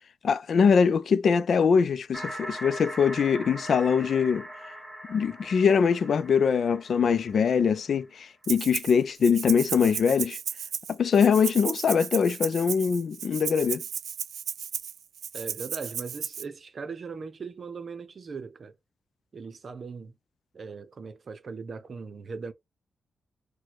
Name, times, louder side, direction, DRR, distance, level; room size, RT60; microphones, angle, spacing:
voice 1, 0.2-4.5 5.1-10.4 10.9-13.8, left 6 dB, 60° left, 0.4 m, -23 dB
sound 1, 2.1-7.8, equal, ahead, 1.6 m, -41 dB
Rattle (instrument), 8.4-8.9 9.2-16.4, right 8 dB, 80° right, 0.4 m, -34 dB
voice 2, 15.3-18.7 19.3-20.1 20.5-22.5, right 5 dB, 50° right, 0.7 m, -39 dB
4.3 x 2.2 x 4.5 m
cardioid pair, 110°, 0 cm